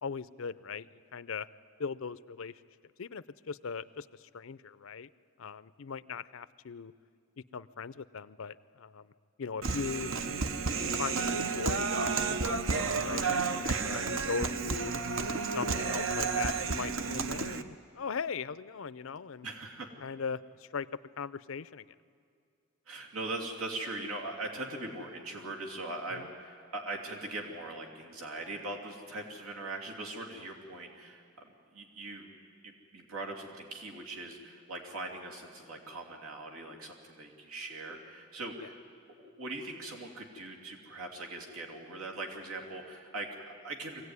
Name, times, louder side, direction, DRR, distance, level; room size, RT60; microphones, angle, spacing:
voice 1, 0.0-0.9 1.1-1.5 1.8-2.6 3.0-5.1 5.4-6.9 7.4-9.1 9.4-10.1 10.8-11.9 12.2-13.3 13.6-14.9 15.5-19.5 20.0-20.9 21.2-21.9 26.1-26.2, left 5 dB, 70° left, 16 dB, 0.5 m, -39 dB
Human voice, 9.6-17.6, right 4 dB, 65° right, 0.9 m, -31 dB
voice 2, 13.7-14.2 19.4-19.9 22.9-31.2 31.7-32.4 32.6-38.8 39.1-44.0, right 2 dB, 90° right, 0 dB, 2.8 m, -41 dB
23.5 x 16.5 x 9.6 m, 2.3 s
head